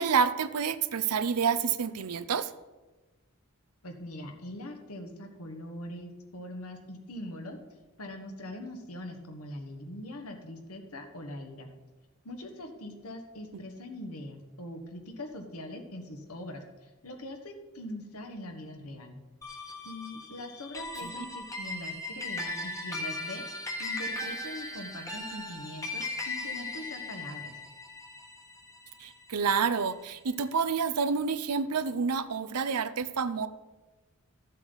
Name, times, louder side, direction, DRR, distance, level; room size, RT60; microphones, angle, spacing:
voice 1, 0.0-2.5 13.5-13.6 21.0-21.1 29.0-33.5, right 6 dB, 85° right, 13 dB, 0.6 m, -28 dB
voice 2, 3.8-7.6 8.0-11.7 12.2-19.2 19.5-27.6, left 1 dB, 70° left, 5 dB, 1.5 m, -42 dB
sound 1, 19.4-30.0, left 2 dB, 15° left, 1.2 m, -38 dB
14.0 x 7.5 x 4.0 m, 1.2 s
head